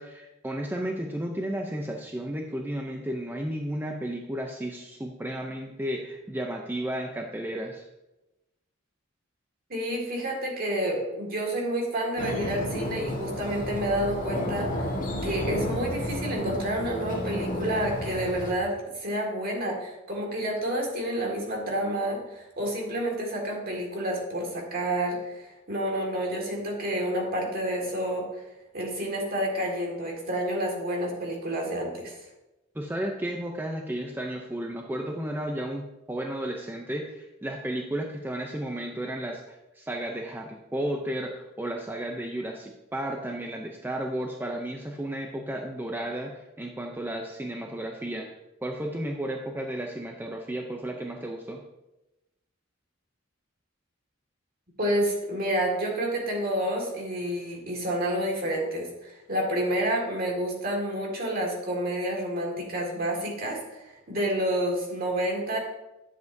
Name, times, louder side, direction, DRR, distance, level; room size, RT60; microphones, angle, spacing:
voice 1, 0.0-7.8 32.7-48.3 48.6-51.6, right 1 dB, 10° right, 1 dB, 0.5 m, -33 dB
voice 2, 9.7-14.9 15.2-28.4 28.7-32.2 54.8-65.6, right 1 dB, 45° right, 0 dB, 2.0 m, -29 dB
sound 1, 12.2-18.5, equal, 40° left, 1.6 m, -32 dB
10.5 x 7.3 x 2.7 m, 0.98 s
head